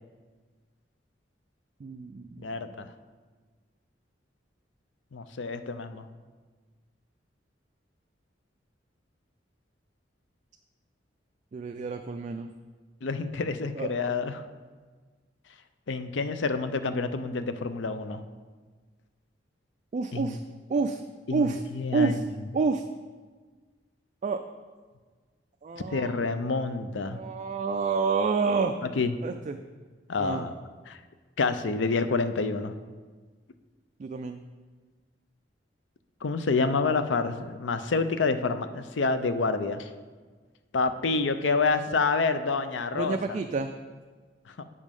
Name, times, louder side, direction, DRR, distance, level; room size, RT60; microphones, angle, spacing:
voice 1, 1.8-2.5 11.5-12.5 13.8-13.9 19.9-20.4 20.7-21.0 21.3-21.6 21.9-22.2 22.5-22.8 24.2-24.4 25.6-26.2 27.1-28.8 29.2-29.6 30.2-30.5 34.0-34.4 42.9-43.7, right 4 dB, 40° right, 6 dB, 0.3 m, -28 dB
voice 2, 2.4-2.9 5.1-6.1 13.0-14.4 15.9-18.2 20.1-20.4 21.3-22.2 25.9-27.2 29.0-29.1 30.1-30.5 30.9-31.0 31.4-32.7 36.2-39.9 40.7-43.2 44.6-44.7, left 4 dB, 80° left, 11 dB, 0.5 m, -28 dB
8.3 x 5.2 x 5.3 m, 1.4 s
head